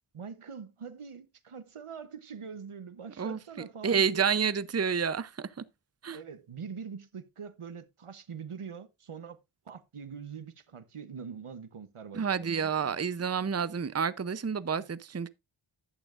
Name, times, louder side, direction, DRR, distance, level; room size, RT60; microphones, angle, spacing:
voice 1, 0.1-4.2 6.1-9.4 9.7-13.0 14.7-14.8, right 6 dB, 85° right, 1.0 m, -43 dB
voice 2, 3.8-5.6 6.0-6.2 12.1-15.3, right 6 dB, 30° right, 0.6 m, -29 dB
11.5 x 8.6 x 2.5 m
wide cardioid pair, 45°, 50 cm